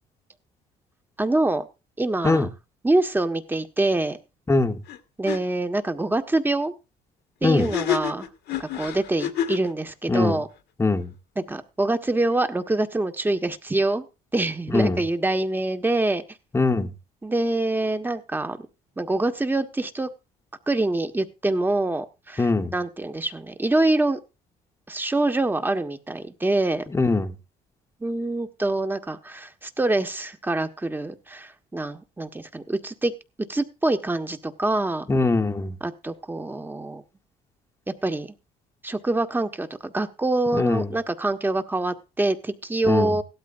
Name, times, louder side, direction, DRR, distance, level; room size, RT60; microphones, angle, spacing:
voice 1, 1.2-1.7 2.0-2.5 2.8-4.2 5.2-6.7 7.4-8.3 8.6-10.5 11.4-14.0 14.3-16.2 17.2-18.6 19.0-20.1 20.7-24.2 24.9-26.8 28.0-33.1 33.5-35.1 35.8-37.0 38.0-38.3 38.8-43.2, right 2 dB, 10° right, 7 dB, 1.5 m, -25 dB
voice 2, 4.5-4.8 7.4-7.7 10.1-10.4 10.8-11.1 14.7-15.0 16.5-16.9 22.4-22.7 26.9-27.3 35.1-35.8 40.5-40.9 42.9-43.2, left 3 dB, 15° left, 6 dB, 1.3 m, -22 dB
sound 1, 4.9-5.0 5.2-5.4 7.6-9.7, left 10 dB, 75° left, 1.7 m, -28 dB
17.5 x 12.5 x 2.6 m, 0.29 s
cardioid pair, 110°, 17 cm